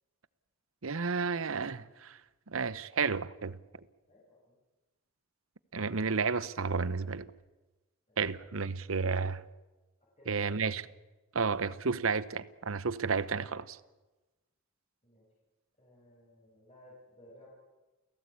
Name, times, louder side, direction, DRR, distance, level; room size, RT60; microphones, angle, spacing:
voice 1, 0.8-2.2 2.5-3.6 5.7-7.3 8.2-9.4 10.3-10.8 11.3-13.8, right 5 dB, 70° right, 0.9 m, -32 dB
voice 2, 4.1-4.6 8.1-8.2 10.2-10.6 15.0-15.3 15.8-17.5, left 1 dB, 30° left, 6.5 m, -57 dB
29.5 x 17.0 x 8.5 m
head